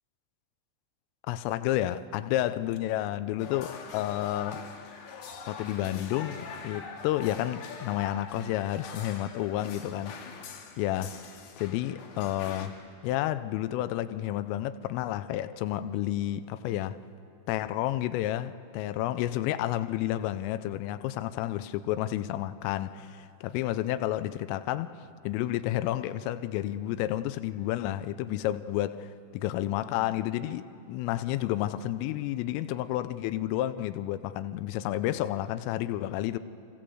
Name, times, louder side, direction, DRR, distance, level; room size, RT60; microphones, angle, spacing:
voice 1, 1.3-4.6 5.5-10.2 10.8-11.1 11.6-12.8 13.0-17.0 17.5-24.9 25.2-36.4, left 13 dB, 90° left, 3.3 m, -31 dB
sound 1, 3.4-12.7, left 5 dB, 65° left, 3.3 m, -43 dB
25.5 x 21.0 x 7.8 m
omnidirectional pair, 5.7 m